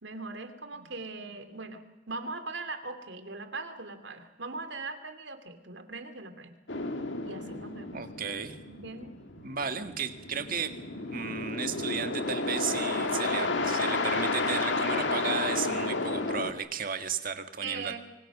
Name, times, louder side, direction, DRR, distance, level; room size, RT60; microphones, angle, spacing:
voice 1, 0.0-6.5 7.2-8.0 8.7-9.1 17.6-18.0, right 3 dB, 70° right, 9 dB, 2.6 m, -40 dB
sound 1, 6.7-16.5, left 3 dB, 75° left, 1.9 m, -32 dB
voice 2, 7.9-8.6 9.4-18.0, right 6 dB, 50° right, 8 dB, 1.8 m, -34 dB
25.5 x 24.5 x 6.1 m, 1.0 s
head